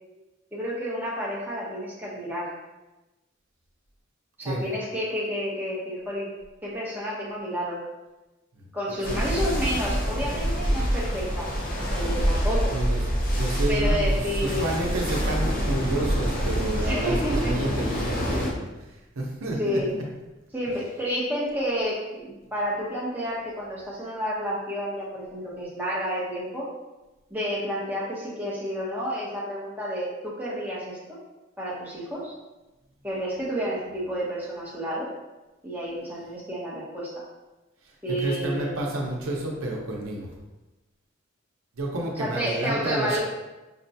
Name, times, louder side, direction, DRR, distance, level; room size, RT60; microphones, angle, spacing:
voice 1, 0.5-2.5 4.4-6.3 6.6-7.8 8.7-11.5 11.9-12.7 13.7-14.6 16.8-17.5 19.6-19.9 20.5-26.7 27.3-31.2 31.6-32.3 33.0-35.1 35.6-37.2 38.0-38.7 42.2-43.2, equal, 10° right, -6 dB, 0.8 m, -30 dB
sound 1, 9.0-18.5, equal, 40° left, 0.6 m, -26 dB
voice 2, 9.1-9.4 12.7-20.0 38.1-40.3 41.7-43.2, right 1 dB, 85° right, -1 dB, 0.7 m, -30 dB
5.5 x 2.2 x 2.7 m, 1.1 s
head